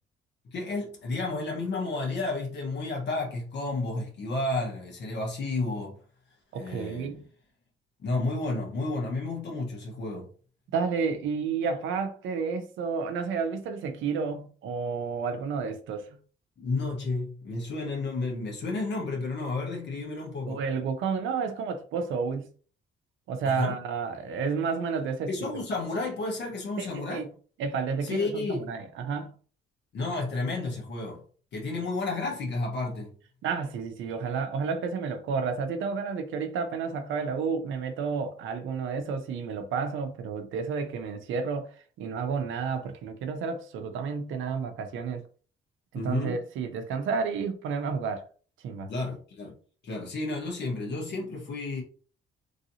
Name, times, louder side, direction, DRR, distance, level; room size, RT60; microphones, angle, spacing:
voice 1, 0.5-6.0 6.6-7.2 8.0-10.3 16.6-20.6 23.4-23.7 25.3-27.3 28.0-28.7 29.9-31.2 31.5-33.1 45.9-46.4 48.9-49.5 49.8-51.8, left 3 dB, 60° left, 1.2 m, -31 dB
voice 2, 6.5-7.2 10.7-16.2 20.5-22.5 23.3-25.5 26.8-27.3 27.6-29.3 33.4-45.2 45.9-48.3 48.6-48.9, right 5 dB, 80° right, 0.6 m, -31 dB
3.1 x 2.7 x 2.7 m
cardioid pair, 90°, 20 cm